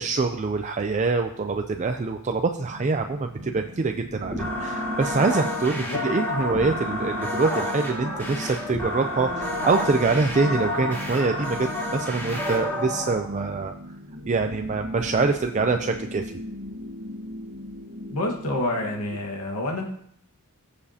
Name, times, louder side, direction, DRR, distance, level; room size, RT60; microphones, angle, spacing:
voice 1, 0.0-13.7 14.3-16.3, right 4 dB, 35° right, 6 dB, 0.4 m, -25 dB
sound 1, 2.6-19.2, left 1 dB, 85° right, 1.3 m, -38 dB
sound 2, 4.3-13.1, left 1 dB, 10° left, 3.5 m, -30 dB
voice 2, 18.1-19.9, left 1 dB, 85° left, 0 dB, 1.6 m, -28 dB
16.0 x 6.9 x 2.8 m, 0.68 s
head